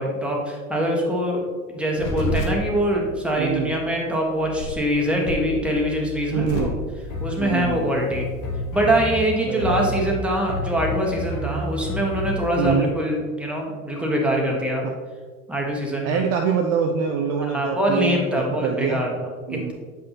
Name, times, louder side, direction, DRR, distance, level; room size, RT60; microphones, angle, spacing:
voice 1, 0.0-1.4 1.7-6.7 7.2-8.2 8.7-14.8 15.5-16.2 17.4-19.7, equal, 5° right, -2 dB, 1.3 m, -24 dB
sound 1, 2.0-12.7, left 1 dB, 45° left, 1.5 m, -30 dB
voice 2, 3.4-3.7 6.3-6.8 7.4-8.0 9.4-10.0 12.6-12.9 16.0-19.0 19.5-19.7, right 6 dB, 40° right, 3 dB, 0.6 m, -25 dB
7.5 x 5.3 x 2.9 m, 1.5 s
hypercardioid pair, 95°, 43 cm